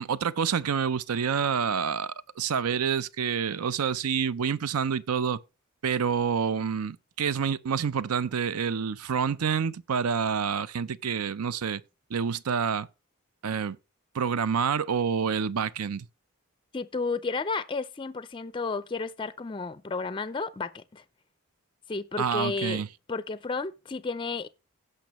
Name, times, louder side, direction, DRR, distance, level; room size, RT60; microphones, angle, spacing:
voice 1, 0.0-5.4 5.8-11.8 12.1-12.9 13.4-13.8 14.1-16.1 22.2-22.9, right 6 dB, 80° right, 0.5 m, -28 dB
voice 2, 16.7-21.0 21.9-22.8 23.1-24.5, left 4 dB, 20° left, 0.4 m, -32 dB
16.5 x 5.7 x 3.0 m
head